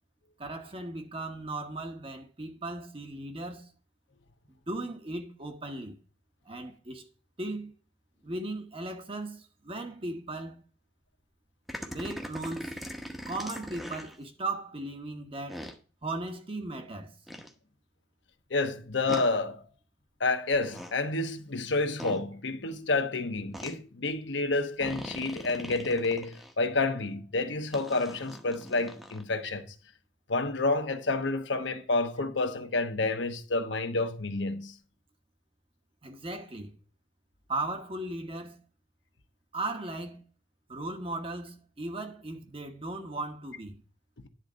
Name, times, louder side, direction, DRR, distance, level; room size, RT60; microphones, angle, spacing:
voice 1, 0.4-3.7 4.7-6.0 6.4-7.1 7.4-7.7 8.2-10.6 11.9-12.8 13.3-15.6 16.0-17.1 36.0-36.8 37.5-38.6 39.5-40.3 40.7-43.8, right 2 dB, 30° right, 1.0 m, -37 dB
sound 1, 11.7-14.2 15.5-15.8 17.3-17.5 19.1-19.3 20.5-20.9 22.0-22.2 23.5-23.7 24.8-26.5 27.7-29.2, equal, ahead, 0.9 m, -41 dB
voice 2, 18.5-19.6 20.2-29.7 30.3-34.7, left 3 dB, 70° left, 1.0 m, -29 dB
10.0 x 4.0 x 6.2 m
head